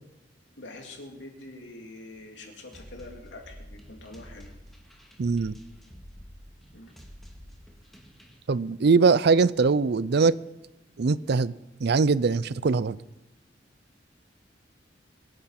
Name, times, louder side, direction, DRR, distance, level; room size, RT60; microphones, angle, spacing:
voice 1, 0.6-4.5 6.7-6.9, left 2 dB, 90° left, 3.0 m, -45 dB
sound 1, 2.7-8.4, equal, ahead, 2.1 m, -48 dB
voice 2, 5.2-5.5 8.5-10.3 11.0-11.5 11.8-13.0, right 4 dB, 65° right, 0.5 m, -22 dB
23.5 x 8.7 x 5.8 m
head